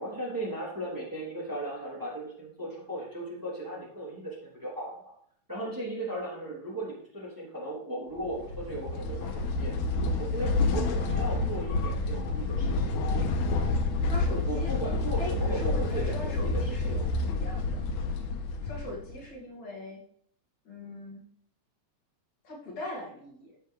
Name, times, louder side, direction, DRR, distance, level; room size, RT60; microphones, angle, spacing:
voice 1, 0.0-5.1 5.5-9.7 10.2-13.0 14.5-16.5 16.9-17.0, right 1 dB, 5° right, -6 dB, 3.1 m, -36 dB
sound 1, 8.2-19.3, left 3 dB, 85° left, 2.5 m, -29 dB
voice 2, 14.0-17.9 18.6-20.0 20.7-21.3 22.4-23.5, left 1 dB, 65° left, -4 dB, 3.3 m, -40 dB
12.5 x 7.6 x 3.3 m, 0.64 s
omnidirectional pair, 3.5 m